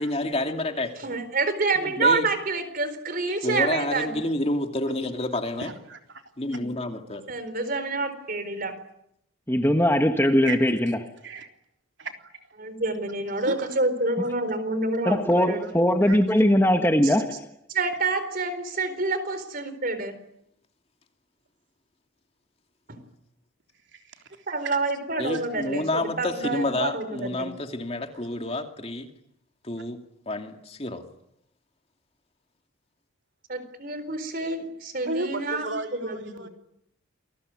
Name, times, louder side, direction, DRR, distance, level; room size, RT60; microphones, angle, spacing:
voice 1, 0.0-0.9 2.0-2.2 3.4-5.7 6.4-7.2 25.2-29.1 29.6-30.0 30.3-31.0, left 1 dB, 30° left, 2.6 m, -29 dB
voice 2, 1.0-4.2 7.3-8.7 12.6-15.7 17.0-17.2 17.7-20.1 22.9-23.0 24.5-27.5 33.5-35.7 36.0-36.5, right 3 dB, 45° right, 4.2 m, -28 dB
voice 3, 5.6-6.2 10.5-10.6 11.2-11.5 13.4-13.7 15.6-15.7 16.0-16.2 23.9-24.8 25.3-25.5 35.1-36.5, right 2 dB, 60° right, 3.6 m, -34 dB
voice 4, 9.5-11.0 15.0-17.3, equal, 10° left, 1.5 m, -20 dB
28.0 x 21.0 x 9.7 m
head